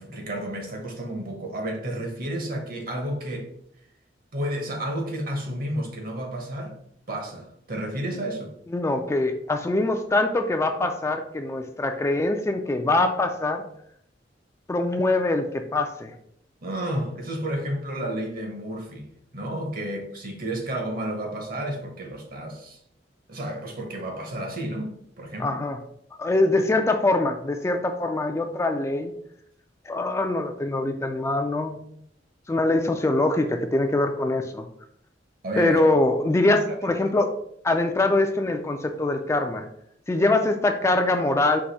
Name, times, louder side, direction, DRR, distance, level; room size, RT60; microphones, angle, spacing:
voice 1, 0.0-3.5 4.3-6.7 7.1-8.5 16.6-22.8 23.3-25.6 35.4-35.9 36.7-36.8 37.0-37.1, right 1 dB, 55° right, 1.0 m, -31 dB
voice 2, 8.7-13.6 14.7-16.1 25.4-25.8 26.2-29.1 29.9-31.8 32.5-34.7 35.6-37.3 37.6-39.7 40.1-41.6, left 2 dB, 15° left, 0.3 m, -23 dB
4.8 x 2.6 x 4.0 m
head